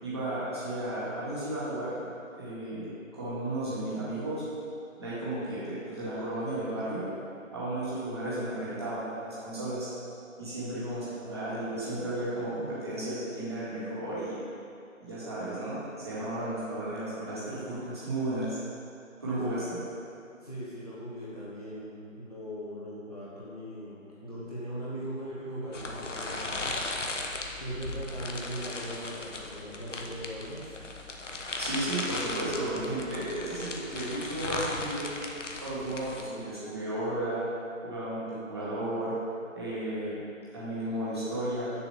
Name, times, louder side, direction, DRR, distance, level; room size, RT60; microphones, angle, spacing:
voice 1, 0.0-2.0 2.3-2.9 3.1-4.4 5.0-7.1 7.5-9.9 10.4-14.4 15.0-18.6 19.2-19.6 31.6-35.1 35.6-37.4 37.8-39.1 39.5-40.1 40.5-41.7, right 1 dB, 20° right, -11 dB, 1.9 m, -34 dB
voice 2, 19.2-19.6 20.4-26.9 27.6-30.8, equal, 30° left, -9 dB, 1.1 m, -39 dB
sound 1, 25.7-36.2, left 2 dB, 60° left, 1.1 m, -37 dB
7.0 x 5.4 x 6.9 m, 2.5 s
figure-of-eight pair, 170°, 40 cm